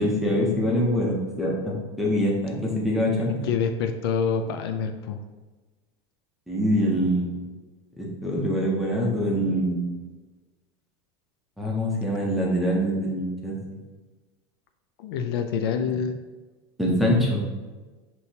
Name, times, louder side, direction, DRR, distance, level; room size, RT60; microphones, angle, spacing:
voice 1, 0.0-3.4 6.5-7.3 8.0-9.9 11.6-13.6 16.8-17.4, equal, ahead, -4 dB, 0.6 m, -24 dB
voice 2, 3.4-5.2 15.0-16.2, left 6 dB, 65° left, 6 dB, 0.4 m, -26 dB
6.0 x 2.7 x 2.7 m, 1.3 s
supercardioid pair, 175°, 14 cm